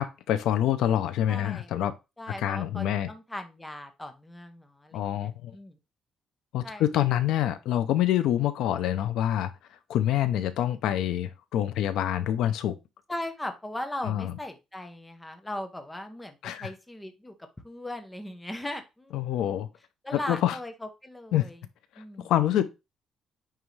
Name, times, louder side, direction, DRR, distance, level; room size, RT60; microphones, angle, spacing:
voice 1, 0.0-1.9 2.4-3.1 4.9-5.5 6.5-9.5 9.9-12.7 14.0-14.3 16.4-16.7 19.1-19.7 20.1-20.6 21.3-21.5 22.2-22.6, left 11 dB, 80° left, 0.6 m, -26 dB
voice 2, 1.3-1.9 2.2-5.8 6.6-7.0 13.1-17.3 17.6-19.6 20.0-21.6 22.0-22.3, left 1 dB, 5° left, 0.8 m, -39 dB
9.2 x 3.5 x 3.2 m
cardioid pair, 170°, 0 cm